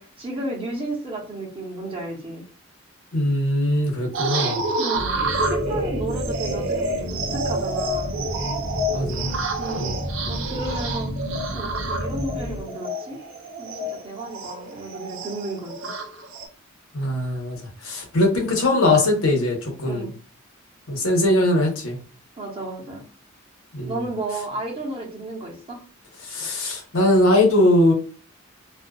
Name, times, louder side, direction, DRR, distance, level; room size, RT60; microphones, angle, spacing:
voice 1, 0.0-2.4 4.7-5.2 5.5-8.1 9.6-10.0 10.3-11.1 11.5-13.2 13.6-15.9 19.8-20.1 22.4-23.0 23.9-25.8, right 2 dB, 25° right, -2 dB, 0.9 m, -33 dB
voice 2, 3.1-4.6 8.9-9.3 9.8-10.0 16.9-17.6 17.8-20.0 20.9-22.0 23.7-24.0 26.3-27.9, left 1 dB, 80° left, 0 dB, 1.0 m, -20 dB
sound 1, 4.1-16.5, right 2 dB, 65° right, 0.5 m, -28 dB
sound 2, 4.9-12.6, equal, 50° left, 0.8 m, -31 dB
2.5 x 2.3 x 2.3 m, 0.37 s
head